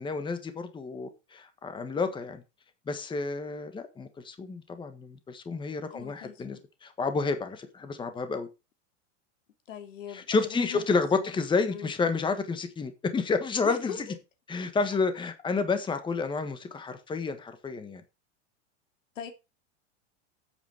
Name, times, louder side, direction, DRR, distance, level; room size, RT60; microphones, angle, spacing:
voice 1, 0.0-2.4 2.9-8.5 10.1-13.9 14.5-18.0, left 4 dB, 15° left, 1.5 m, -30 dB
voice 2, 5.9-6.6 9.7-11.4 11.7-11.9 13.6-14.1 19.2-19.3, left 8 dB, 85° left, 2.8 m, -41 dB
9.0 x 8.5 x 4.9 m
supercardioid pair, 140°, 37 cm